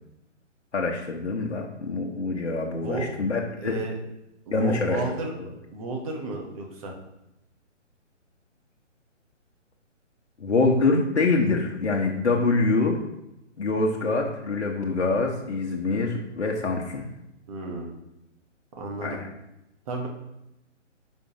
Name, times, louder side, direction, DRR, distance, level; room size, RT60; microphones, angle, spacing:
voice 1, 0.7-3.8 4.5-5.0 5.4-5.5 10.4-13.0 13.6-17.0 19.0-19.3, left 3 dB, 60° left, 0 dB, 1.2 m, -25 dB
voice 2, 2.8-3.1 3.6-4.0 4.5-5.3 5.7-6.9 17.5-17.9 18.8-19.2 19.9-20.1, right 2 dB, 30° right, 1 dB, 1.4 m, -32 dB
10.0 x 5.4 x 3.0 m, 0.89 s
figure-of-eight pair, 135°, 37 cm